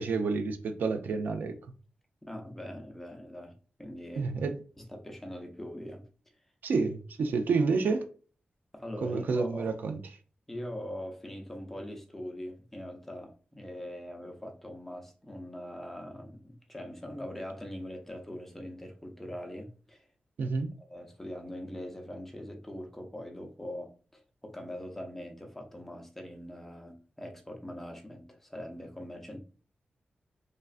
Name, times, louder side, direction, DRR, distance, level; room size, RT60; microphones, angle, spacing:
voice 1, 0.0-1.6 4.2-4.6 6.6-8.1 9.0-10.0 20.4-20.7, right 4 dB, 75° right, 0.3 m, -29 dB
voice 2, 2.2-3.5 3.8-4.3 4.8-6.0 8.7-9.7 10.5-20.0 20.9-29.4, left 1 dB, 10° left, 0.5 m, -42 dB
3.2 x 2.4 x 2.4 m
wide cardioid pair, 115°, 3 cm